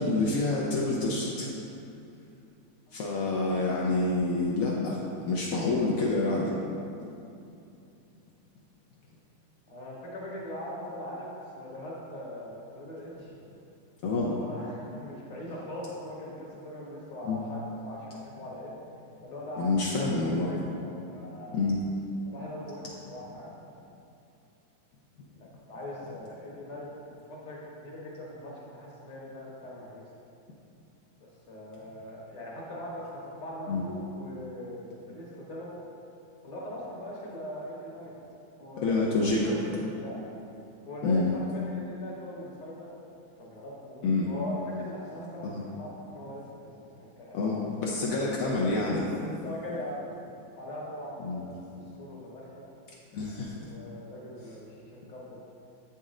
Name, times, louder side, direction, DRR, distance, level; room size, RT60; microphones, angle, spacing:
voice 1, 0.0-1.5 2.9-6.5 14.0-14.3 17.2-17.4 19.6-20.5 21.5-21.8 33.7-33.8 38.8-39.6 41.0-41.3 44.0-44.3 45.4-45.6 47.3-49.3 51.2-51.4 53.1-53.5, left 3 dB, 70° left, -3 dB, 0.8 m, -27 dB
voice 2, 9.7-11.3 11.5-13.3 14.1-18.7 19.2-20.0 20.5-21.7 22.3-23.5 25.3-30.0 31.2-35.8 36.4-38.2 38.6-39.1 39.4-40.2 40.8-42.9 43.4-46.7 47.0-48.0 49.4-50.0 50.5-52.7 53.6-55.4, equal, 45° left, -4 dB, 1.3 m, -41 dB
7.7 x 4.2 x 3.6 m, 2.7 s
omnidirectional pair, 2.1 m